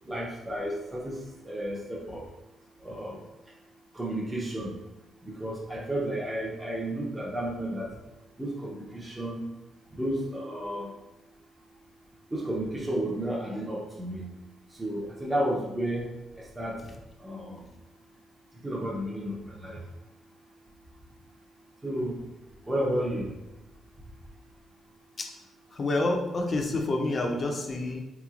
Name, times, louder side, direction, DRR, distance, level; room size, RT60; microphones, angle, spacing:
voice 1, 0.1-1.2 1.4-2.2 2.8-3.2 3.9-4.7 5.2-7.9 8.4-9.4 9.9-10.9 12.3-14.3 14.7-16.1 16.4-16.8 17.2-17.6 18.6-19.8 21.8-22.3 22.7-23.4, right 1 dB, 15° right, -4 dB, 0.6 m, -32 dB
voice 2, 25.7-28.0, left 2 dB, 40° left, 3 dB, 0.5 m, -28 dB
3.7 x 3.0 x 2.4 m, 1.0 s
cardioid pair, 90°, 0 cm